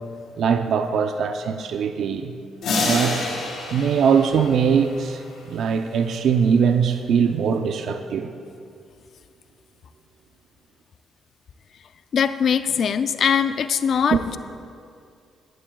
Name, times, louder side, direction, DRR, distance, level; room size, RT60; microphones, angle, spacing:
voice 1, 0.4-2.3 2.8-3.2 3.7-5.2 5.5-8.3 14.1-14.2, right 6 dB, 70° right, 7 dB, 0.6 m, -21 dB
sound 1, 2.6-5.4, left 3 dB, 75° left, 3.4 m, -28 dB
voice 2, 12.1-14.4, left 7 dB, 60° left, 11 dB, 0.4 m, -21 dB
16.5 x 14.0 x 2.3 m, 2.4 s
cardioid pair, 90°, 0 cm